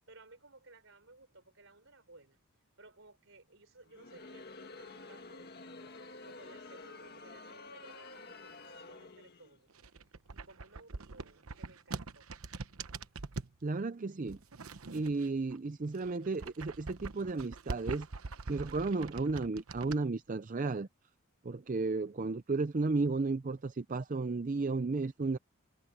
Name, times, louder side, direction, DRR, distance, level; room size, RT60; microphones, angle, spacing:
voice 1, 0.1-2.4 2.8-6.0 6.2-9.7 10.3-12.3, right 2 dB, 65° right, 4.2 m, -58 dB
Crowd, 3.9-9.6, left 3 dB, 45° left, 1.8 m, -50 dB
sound 1, 9.7-13.6 14.3-15.6 15.9-20.0, right 3 dB, 85° right, 1.0 m, -43 dB
voice 2, 13.6-14.4 14.9-18.1 18.5-20.9 21.4-25.4, right 3 dB, 40° right, 0.5 m, -33 dB
head